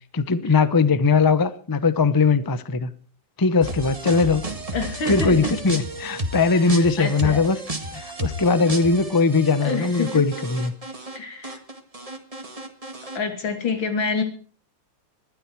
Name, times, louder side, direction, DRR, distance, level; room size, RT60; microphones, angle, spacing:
voice 1, 0.1-2.9 3.4-4.4 5.1-7.6 7.9-10.7, left 4 dB, 20° left, 14 dB, 0.5 m, -20 dB
sound 1, 3.6-11.2 11.4-13.2, right 1 dB, 20° right, 1.8 m, -32 dB
voice 2, 4.7-5.5 6.5-7.5 9.6-10.2 11.2-11.6 13.2-14.2, left 4 dB, 90° left, 6 dB, 3.3 m, -27 dB
20.0 x 13.0 x 4.7 m, 0.43 s
omnidirectional pair, 2.0 m